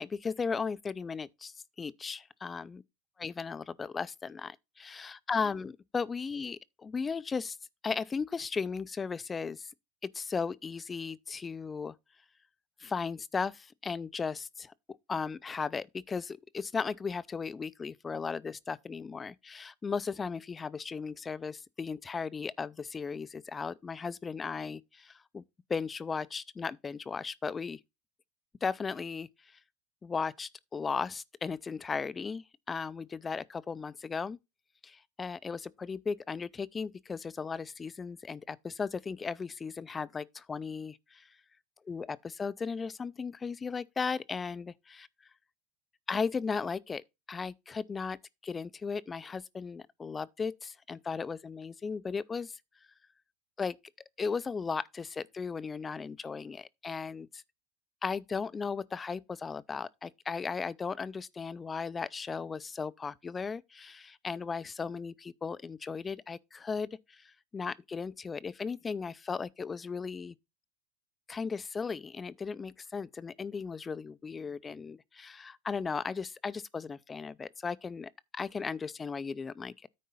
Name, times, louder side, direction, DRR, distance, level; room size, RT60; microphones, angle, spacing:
voice 1, 0.0-2.8 3.2-7.6 7.8-9.7 10.0-11.9 12.8-14.7 15.1-25.4 25.7-27.8 28.6-29.3 30.0-34.4 34.8-41.3 41.9-45.1 46.1-48.2 48.4-52.6 53.6-53.8 54.2-57.4 58.0-70.3 71.3-79.9, left 5 dB, 20° left, 0.4 m, -36 dB
9.4 x 3.7 x 5.5 m
supercardioid pair, 100°, 0 cm